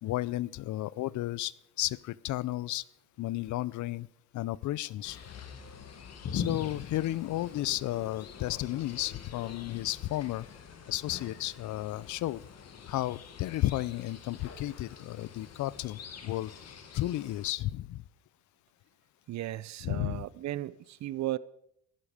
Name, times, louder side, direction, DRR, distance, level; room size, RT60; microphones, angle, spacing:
voice 1, 0.0-2.8 3.2-4.1 4.3-5.2 6.3-10.5 10.9-12.4 12.9-16.5 16.9-18.0 19.8-20.2, left 15 dB, 75° left, 0.5 m, -33 dB
sound 1, 5.0-17.5, left 7 dB, 55° left, 1.7 m, -44 dB
voice 2, 19.3-21.4, right 15 dB, 65° right, 0.6 m, -35 dB
14.5 x 11.5 x 5.0 m
cardioid pair, 90°, 30 cm